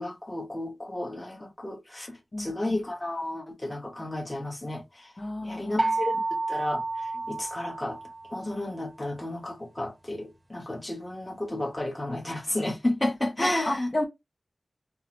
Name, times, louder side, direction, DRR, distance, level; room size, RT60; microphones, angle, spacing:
voice 1, 0.0-2.1 2.4-4.8 5.4-6.2 6.5-6.8 7.3-8.0 8.3-13.9, left 1 dB, 20° left, 1.1 m, -32 dB
voice 2, 2.3-2.8 5.2-6.0 13.4-14.0, left 1 dB, 45° left, 0.9 m, -32 dB
sound 1, 5.8-8.6, right 2 dB, 30° right, 0.9 m, -30 dB
3.7 x 2.1 x 2.8 m
wide cardioid pair, 50°, 0 cm